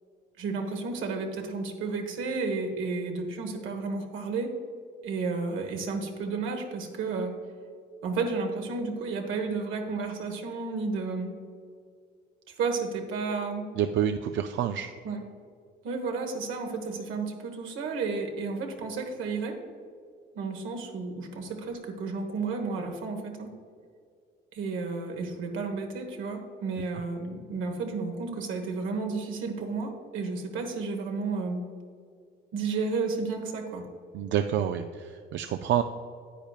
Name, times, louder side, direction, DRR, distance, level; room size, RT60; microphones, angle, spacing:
voice 1, 0.4-4.5 5.0-7.4 8.0-11.3 12.5-13.6 15.0-15.2 15.8-19.6 20.3-23.5 24.5-31.6 32.5-33.8, right 4 dB, 85° right, 3 dB, 1.3 m, -32 dB
voice 2, 13.7-14.9 34.1-35.8, right 10 dB, 70° right, 7 dB, 0.4 m, -28 dB
9.9 x 8.9 x 2.4 m, 2.2 s
cardioid pair, 90°, 20 cm